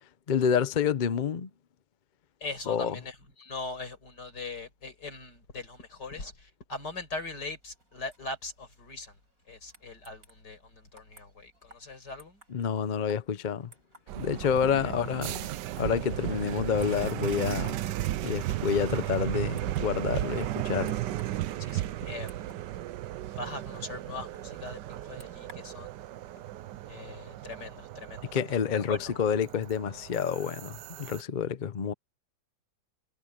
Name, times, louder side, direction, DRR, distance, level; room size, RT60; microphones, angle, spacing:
voice 1, 0.3-1.5 2.7-3.0 12.5-13.7 14.1-15.5 15.8-17.8 18.2-20.9 28.3-31.9, left 7 dB, 45° left, 0.6 m, -28 dB
voice 2, 2.4-9.1 9.5-12.4 14.4-14.5 21.6-22.4 23.4-25.9 26.9-28.3 28.7-29.1, left 3 dB, 80° left, 5.9 m, -40 dB
sound 1, 7.6-25.8, right 1 dB, 55° right, 7.2 m, -60 dB
sound 2, 14.1-31.2, right 14 dB, 85° right, 1.3 m, -35 dB
omnidirectional pair, 1.8 m